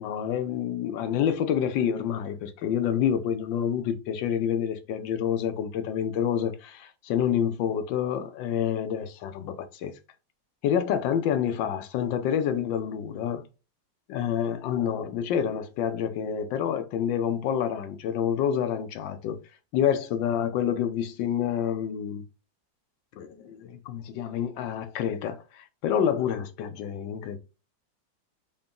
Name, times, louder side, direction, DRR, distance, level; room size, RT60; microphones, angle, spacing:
voice 1, 0.0-9.9 10.6-13.5 14.1-19.4 19.7-22.3 23.2-27.4, left 8 dB, 80° left, 1.3 m, -28 dB
4.0 x 2.2 x 3.6 m
omnidirectional pair, 2.0 m